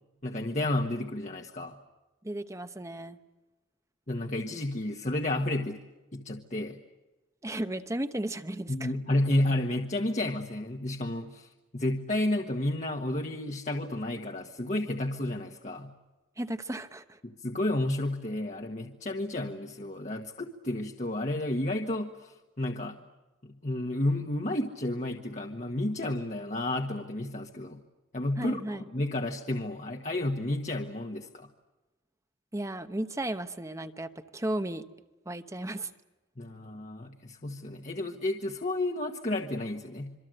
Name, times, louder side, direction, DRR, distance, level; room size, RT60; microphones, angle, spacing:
voice 1, 0.2-1.8 4.1-5.8 6.1-6.8 8.7-15.9 17.2-23.0 23.4-27.8 28.1-31.5 36.4-40.1, left 1 dB, 40° left, 3 dB, 1.4 m, -31 dB
voice 2, 2.2-3.2 7.4-8.9 16.4-17.2 28.4-28.8 32.5-34.8 35.3-35.9, right 1 dB, 15° right, 9 dB, 1.0 m, -34 dB
26.5 x 24.5 x 7.9 m, 1.1 s
head